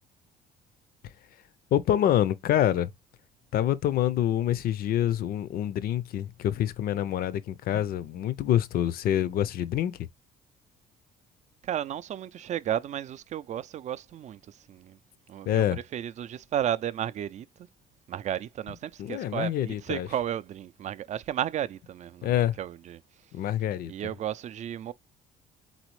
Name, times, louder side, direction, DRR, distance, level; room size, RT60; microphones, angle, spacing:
voice 1, 1.7-2.9 3.5-10.1 15.5-15.8 19.0-20.1 22.2-22.6 23.3-23.9, left 11 dB, 60° left, 0.6 m, -26 dB
voice 2, 11.6-15.0 15.3-15.6 15.9-17.5 18.1-23.0 23.9-24.9, right 10 dB, 45° right, 0.4 m, -33 dB
4.1 x 4.0 x 3.0 m
cardioid pair, 110°, 17 cm